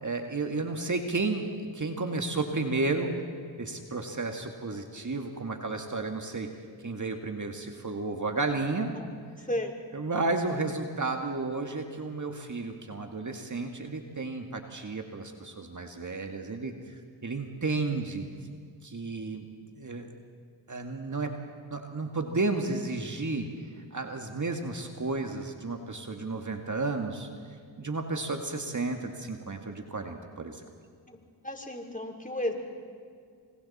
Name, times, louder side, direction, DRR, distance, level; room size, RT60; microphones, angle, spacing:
voice 1, 0.0-3.1 3.6-6.5 6.8-8.9 9.9-16.7 17.2-18.3 18.8-19.4 19.8-20.1 20.7-21.3 21.7-23.5 23.9-27.3 27.8-30.6, right 3 dB, 35° right, 4 dB, 2.1 m, -32 dB
voice 2, 9.4-9.7 31.1-31.2 31.4-32.5, left 1 dB, 15° left, 2 dB, 4.1 m, -33 dB
28.0 x 25.0 x 4.4 m, 2.2 s
supercardioid pair, 45°, 49 cm